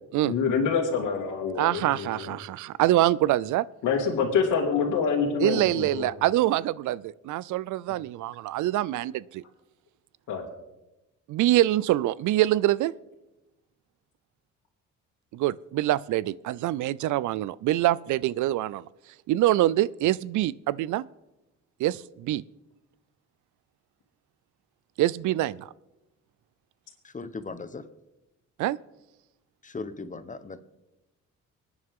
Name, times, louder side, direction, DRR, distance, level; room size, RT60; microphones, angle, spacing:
voice 1, 0.2-2.3 3.8-6.1 10.3-10.4, left 6 dB, 85° left, -2 dB, 2.3 m, -26 dB
voice 2, 1.6-3.7 5.4-9.4 11.3-12.9 15.3-18.9 19.3-21.0 21.8-22.4 25.0-25.7 28.6-28.8, right 15 dB, 75° right, 21 dB, 0.5 m, -25 dB
voice 3, 27.0-27.8 29.6-30.6, left 3 dB, 25° left, 12 dB, 1.0 m, -38 dB
25.5 x 9.7 x 3.6 m, 1.0 s
cardioid pair, 90°, 30 cm